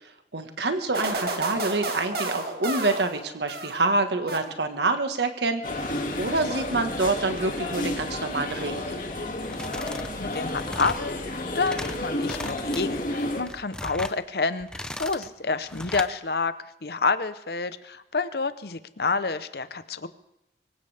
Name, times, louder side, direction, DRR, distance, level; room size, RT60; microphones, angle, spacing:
voice 1, 0.0-9.0, right 3 dB, 80° right, 7 dB, 1.5 m, -27 dB
sound 1, 0.9-3.9 4.3-4.9, right 2 dB, 60° right, 2.2 m, -32 dB
sound 2, 5.6-13.4, left 1 dB, 50° left, 2.4 m, -31 dB
sound 3, 9.4-10.1 10.4-11.0 11.5-12.0 12.2-12.8 13.3-14.2 14.6-15.3 15.7-16.1, left 1 dB, 5° left, 0.6 m, -37 dB
voice 2, 10.2-16.5 16.8-20.1, left 4 dB, 65° left, 13 dB, 0.8 m, -28 dB
24.5 x 16.5 x 3.5 m, 0.91 s
head